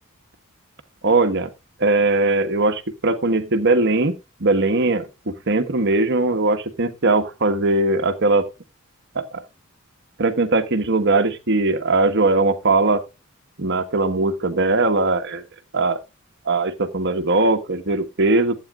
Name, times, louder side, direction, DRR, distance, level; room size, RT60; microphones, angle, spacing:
voice 1, 1.0-1.5 1.8-8.4 9.1-9.4 10.2-13.0 13.6-15.4 15.7-16.0 16.4-18.6, right 2 dB, 55° right, 1.4 m, -20 dB
15.0 x 8.8 x 2.4 m
head